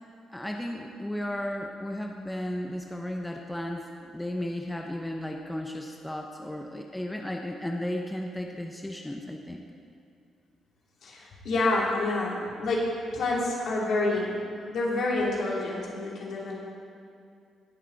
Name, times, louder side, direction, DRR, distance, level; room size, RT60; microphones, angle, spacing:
voice 1, 0.3-9.6, left 1 dB, 10° left, 2 dB, 1.0 m, -34 dB
voice 2, 11.0-14.4 14.7-16.5, left 2 dB, 65° left, -4 dB, 3.1 m, -28 dB
18.5 x 7.5 x 4.1 m, 2.4 s
cardioid pair, 75°, 0 cm